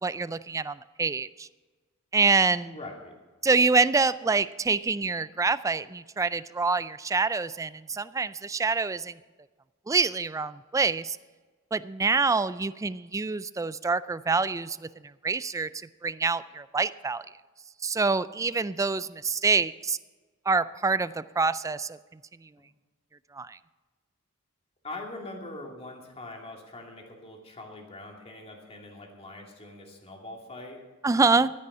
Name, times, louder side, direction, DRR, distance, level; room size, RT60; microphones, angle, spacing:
voice 1, 0.0-1.5 2.1-2.8 3.4-9.2 9.9-11.2 11.7-14.9 15.2-15.7 16.0-17.2 17.8-20.0 20.5-22.0 23.3-23.6 31.0-31.5, right 4 dB, 15° right, 15 dB, 0.3 m, -26 dB
voice 2, 2.6-3.1 24.8-30.8, left 2 dB, 30° left, 0 dB, 2.5 m, -42 dB
14.0 x 9.8 x 5.6 m, 1.3 s
head